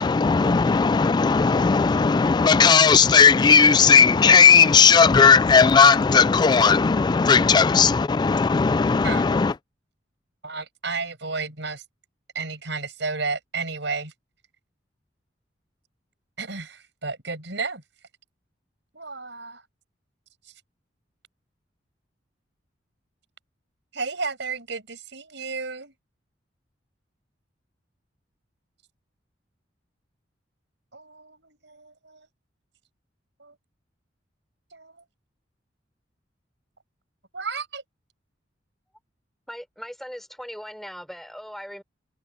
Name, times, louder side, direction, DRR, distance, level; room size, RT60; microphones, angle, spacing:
voice 1, 0.0-9.5, left 5 dB, 25° left, 0.3 m, -16 dB
voice 2, 10.4-11.8 12.3-14.1 16.4-17.8 18.9-19.6 23.9-25.9 30.9-32.3 33.4-33.5 34.7-35.0 37.3-37.8, right 4 dB, 70° right, 6.9 m, -32 dB
voice 3, 39.5-41.8, equal, ahead, 3.8 m, -39 dB
head